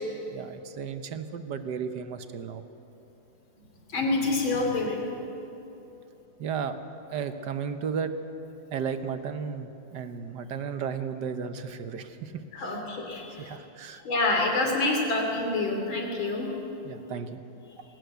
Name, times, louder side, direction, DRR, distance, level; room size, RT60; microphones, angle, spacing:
voice 1, 0.3-2.6 6.4-6.8 7.1-8.1 8.7-12.8 13.4-14.0 16.8-17.4, right 6 dB, 65° right, 9 dB, 1.5 m, -34 dB
voice 2, 3.9-5.0 12.5-13.5 14.1-16.5, left 2 dB, 85° left, 1 dB, 3.8 m, -27 dB
22.0 x 17.5 x 8.1 m, 3.0 s
omnidirectional pair, 2.1 m